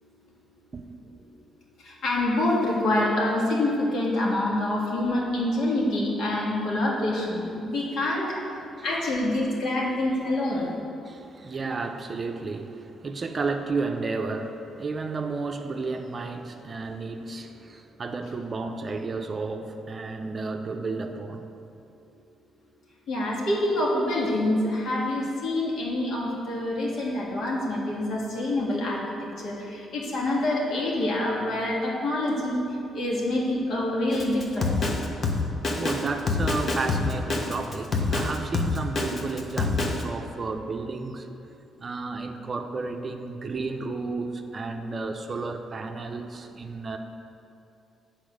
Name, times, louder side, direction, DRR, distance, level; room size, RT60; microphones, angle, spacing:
voice 1, 1.9-8.3 8.8-10.7 23.1-32.6 32.9-34.8, left 1 dB, 70° left, -4 dB, 1.8 m, -26 dB
voice 2, 8.5-8.9 11.1-21.5 35.8-41.3 41.8-47.0, right 3 dB, 35° right, 5 dB, 0.6 m, -32 dB
Drum kit, 34.1-40.0, left 3 dB, 45° left, 0.9 m, -26 dB
7.9 x 4.3 x 6.4 m, 2.7 s
cardioid pair, 90°, 0 cm